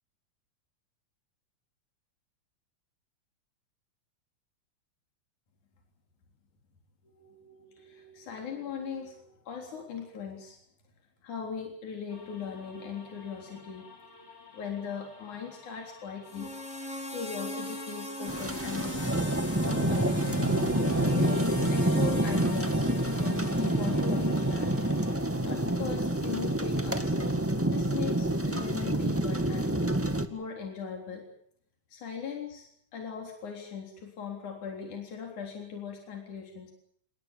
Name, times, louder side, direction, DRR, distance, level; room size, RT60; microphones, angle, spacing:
voice 1, 7.0-10.6 11.2-16.5 17.1-19.3 19.6-20.4 21.1-24.7 25.4-27.4 27.7-29.8 30.3-31.2 31.9-36.7, left 6 dB, 75° left, 1 dB, 5.1 m, -39 dB
sound 1, 12.1-25.2, left 1 dB, 20° left, 4.7 m, -39 dB
sound 2, 18.3-30.2, right 1 dB, 5° right, 1.1 m, -28 dB
29.5 x 19.5 x 7.4 m, 0.67 s
omnidirectional pair, 3.5 m